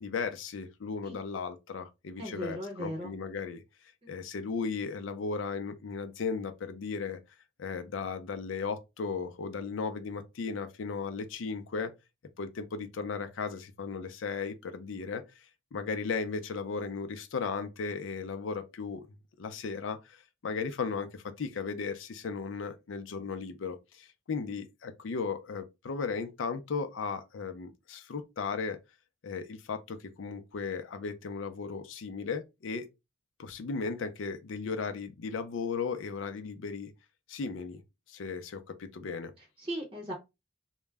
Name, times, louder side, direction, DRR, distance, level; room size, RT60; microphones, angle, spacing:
voice 1, 0.0-3.6 4.1-7.2 7.6-11.9 12.4-15.2 15.7-19.1 19.4-28.8 29.2-32.9 33.4-36.9 37.3-37.8 38.1-39.3, left 5 dB, 85° left, 0.4 m, -36 dB
voice 2, 2.2-3.1 39.4-40.1, right 1 dB, 25° right, 0.6 m, -37 dB
2.2 x 2.0 x 3.3 m
head